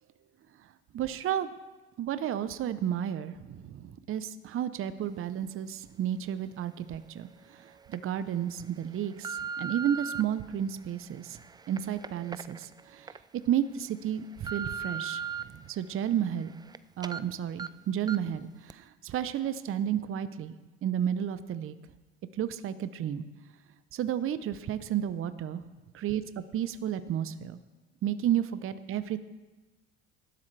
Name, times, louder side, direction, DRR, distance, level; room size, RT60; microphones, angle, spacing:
voice 1, 0.9-1.5 2.0-11.4 11.7-13.2 13.4-16.5 17.0-20.5 20.8-21.8 22.3-23.2 23.9-25.6 25.9-26.2 26.5-27.6 28.0-29.2, right 10 dB, 40° right, 13 dB, 0.8 m, -32 dB
sound 1, 6.9-7.0 7.7-8.0 8.6-10.2 10.9-13.2 13.6-13.7 14.1-15.4 15.9-16.8 17.0-17.2 17.6-17.7 18.1-18.3 18.7-18.8, right 6 dB, 15° right, 0.5 m, -38 dB
18.0 x 12.0 x 3.3 m, 1.2 s
hypercardioid pair, 75°, 32 cm